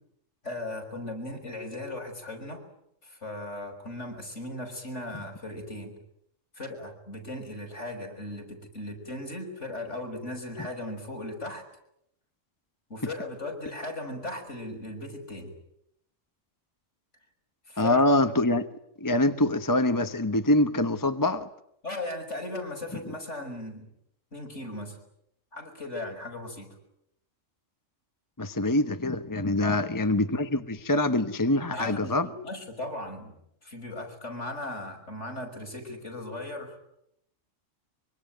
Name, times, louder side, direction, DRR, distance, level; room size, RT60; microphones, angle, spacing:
voice 1, 0.4-2.6 3.0-5.9 6.5-11.6 12.9-15.5 17.7-18.0 21.8-23.9 24.3-25.0 25.5-26.7 29.6-29.8 31.7-33.4 33.6-36.8, left 1 dB, 65° left, 4 dB, 6.3 m, -37 dB
voice 2, 17.8-18.7 19.0-21.5 28.4-32.3, left 1 dB, 15° left, 9 dB, 1.0 m, -24 dB
25.0 x 24.5 x 9.2 m, 0.76 s
omnidirectional pair, 1.3 m